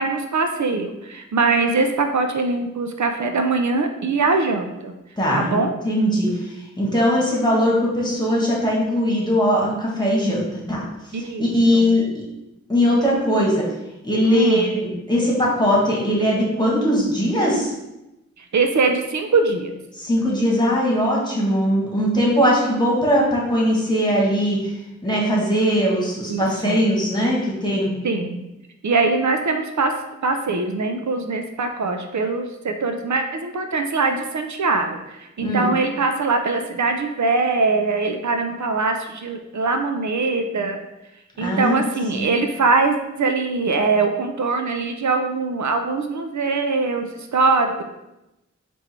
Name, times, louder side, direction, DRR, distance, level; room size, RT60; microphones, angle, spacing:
voice 1, 0.0-4.9 5.3-5.7 11.1-11.9 14.3-14.7 18.4-19.7 26.3-26.8 28.0-28.4 28.8-29.9 30.2-40.8 41.4-47.8, right 3 dB, 75° right, 5 dB, 0.5 m, -22 dB
voice 2, 5.2-5.6 5.8-10.4 10.7-10.8 11.2-12.2 12.7-13.7 14.0-17.7 19.9-24.7 25.0-27.9 35.4-35.7 41.4-41.7 42.1-42.3, equal, 15° left, -4 dB, 1.5 m, -20 dB
4.6 x 2.6 x 4.3 m, 0.93 s
wide cardioid pair, 60°, 29 cm